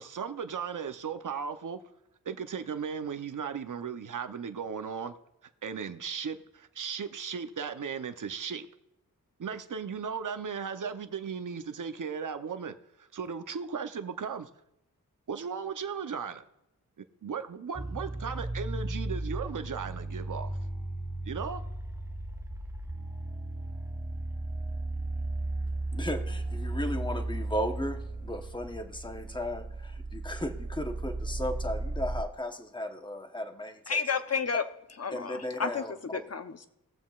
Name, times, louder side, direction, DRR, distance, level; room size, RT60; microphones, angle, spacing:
voice 1, 0.0-1.8 2.2-5.1 5.6-8.7 9.4-14.5 15.3-16.4 17.2-20.5 21.3-21.6, right 6 dB, 60° right, 0.8 m, -36 dB
sound 1, 17.8-32.2, right 2 dB, 10° right, 0.7 m, -35 dB
voice 2, 25.9-34.0 35.1-36.2, left 1 dB, 15° left, 1.1 m, -35 dB
voice 3, 33.9-34.7 35.0-35.8 36.1-36.7, left 5 dB, 45° left, 0.7 m, -31 dB
21.0 x 7.4 x 2.4 m
wide cardioid pair, 75°, 35 cm